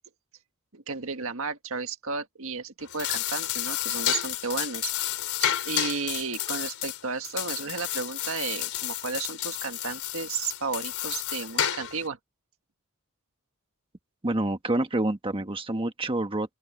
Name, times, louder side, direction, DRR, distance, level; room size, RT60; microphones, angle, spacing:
voice 1, 0.7-4.9 5.4-12.2, right 4 dB, 65° right, 1.7 m, -33 dB
sound 1, 2.8-12.1, left 11 dB, 90° left, 3.6 m, -31 dB
voice 2, 14.2-16.5, right 2 dB, 25° right, 1.4 m, -27 dB
open air
head